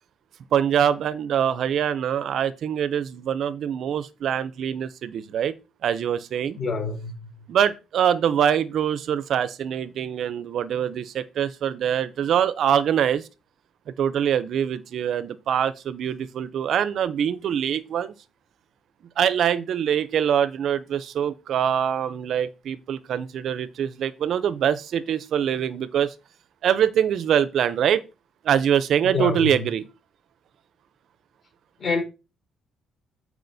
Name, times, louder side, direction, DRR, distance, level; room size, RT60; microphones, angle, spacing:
voice 1, 0.5-5.5 5.8-6.6 7.5-13.2 14.0-18.1 19.2-26.1 26.6-28.0 28.4-29.8, right 9 dB, 60° right, 0.5 m, -24 dB
voice 2, 6.5-7.1 29.0-29.5 31.8-32.0, left 4 dB, 35° left, 4.3 m, -26 dB
13.0 x 4.8 x 2.7 m
cardioid pair, 120°, 0 cm